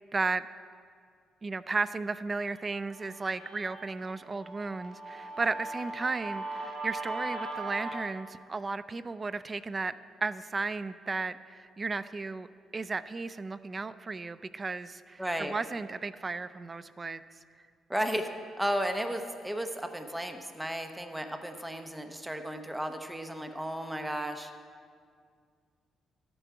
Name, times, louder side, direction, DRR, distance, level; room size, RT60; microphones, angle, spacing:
voice 1, 0.1-0.5 1.4-9.9 10.2-12.5 12.7-17.2, right 3 dB, 30° right, 15 dB, 0.4 m, -34 dB
Guitar, 2.5-8.0, right 2 dB, 50° right, 3.5 m, -39 dB
voice 2, 15.2-15.5 17.9-18.3 18.6-24.5, equal, 5° right, 6 dB, 0.8 m, -34 dB
12.5 x 9.0 x 4.8 m, 2.1 s
cardioid pair, 90°, 0 cm